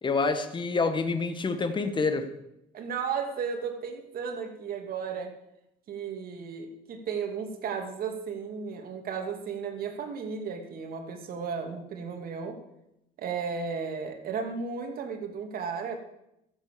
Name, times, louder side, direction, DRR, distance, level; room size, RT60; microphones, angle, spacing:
voice 1, 0.0-2.3, left 4 dB, 30° left, 9 dB, 1.5 m, -27 dB
voice 2, 2.7-5.4 5.9-12.6 13.2-16.0, right 6 dB, 60° right, 4 dB, 2.4 m, -34 dB
14.0 x 8.1 x 6.9 m, 0.85 s
cardioid pair, 110°, 17 cm